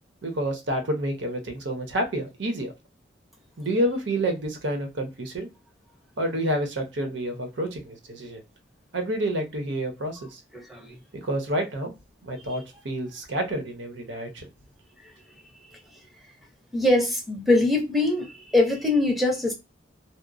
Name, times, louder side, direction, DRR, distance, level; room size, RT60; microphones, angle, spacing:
voice 1, 0.2-2.7 3.6-5.5 6.2-8.4 8.9-10.4 11.1-11.9 12.2-14.5, right 1 dB, 90° right, 0.8 m, -29 dB
voice 2, 10.5-11.0 15.7-15.8 16.7-19.5, left 2 dB, ahead, 0.6 m, -23 dB
2.8 x 2.0 x 2.4 m
head